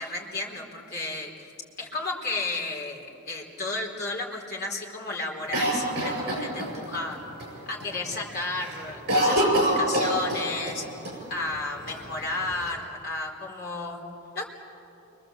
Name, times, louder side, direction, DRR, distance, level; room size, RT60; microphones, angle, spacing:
voice 1, 0.0-1.5 1.8-7.2 7.7-14.0 14.3-14.4, left 2 dB, 45° left, -1 dB, 4.3 m, -33 dB
Cough, 5.5-7.0 7.4-7.5 7.8-8.2 8.5-10.8 11.0-11.1 11.9-12.7, right 1 dB, 50° right, 7.3 m, -25 dB
29.5 x 24.0 x 8.0 m, 2.9 s
head